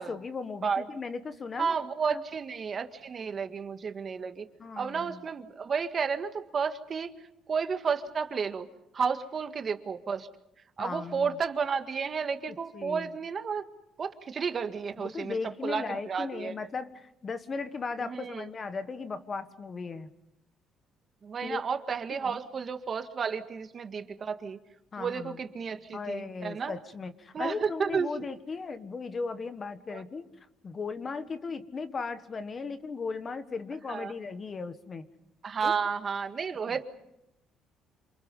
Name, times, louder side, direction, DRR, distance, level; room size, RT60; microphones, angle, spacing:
voice 1, 0.0-1.8 2.1-2.2 4.6-5.2 10.8-11.4 12.7-13.1 15.0-20.1 21.4-21.6 22.1-22.4 24.9-25.4 25.9-30.2 30.6-35.1 35.6-35.7 36.7-36.8, left 4 dB, 30° left, 11 dB, 1.5 m, -37 dB
voice 2, 1.6-4.5 4.8-7.1 7.5-8.7 8.9-10.3 10.8-13.7 14.0-16.6 18.0-18.5 21.2-24.6 25.0-26.7 27.3-28.1 29.9-30.0 33.9-34.1 35.4-36.8, right 6 dB, 40° right, 7 dB, 1.7 m, -32 dB
28.0 x 27.0 x 5.5 m, 0.85 s
cardioid pair, 125°, 0 cm